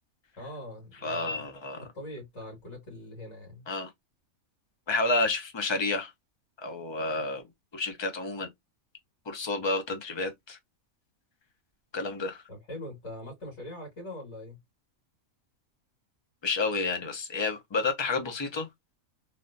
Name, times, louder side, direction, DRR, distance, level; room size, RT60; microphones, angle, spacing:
voice 1, 0.4-1.5 1.8-3.7 12.5-14.6, left 1 dB, 55° left, 2.2 m, -42 dB
voice 2, 1.0-1.8 3.7-3.9 4.9-6.1 6.6-7.4 7.7-8.5 9.3-10.6 11.9-12.4 16.4-18.7, left 3 dB, 25° left, 0.7 m, -30 dB
3.4 x 2.5 x 2.6 m
omnidirectional pair, 1.5 m